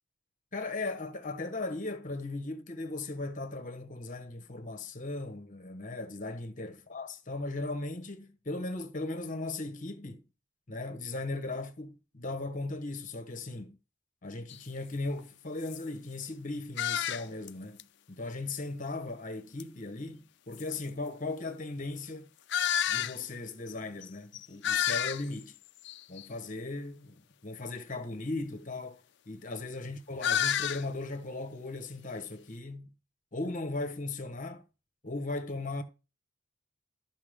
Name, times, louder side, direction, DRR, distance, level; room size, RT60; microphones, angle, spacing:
voice 1, 0.5-10.2 10.7-13.8 14.2-22.3 22.9-25.6 26.1-29.0 29.3-32.9 33.3-34.6 35.0-35.8, left 2 dB, 40° left, 1.3 m, -37 dB
sound 1, 14.5-14.6 15.2-15.3 15.6-15.8 16.8-17.5 17.8-17.9 19.6-19.7 20.5-20.6 22.5-23.2 23.7-23.8 24.0-24.1 24.3-25.4 25.8-26.3 30.2-30.8, left 10 dB, 55° left, 0.5 m, -30 dB
13.5 x 5.9 x 3.7 m
head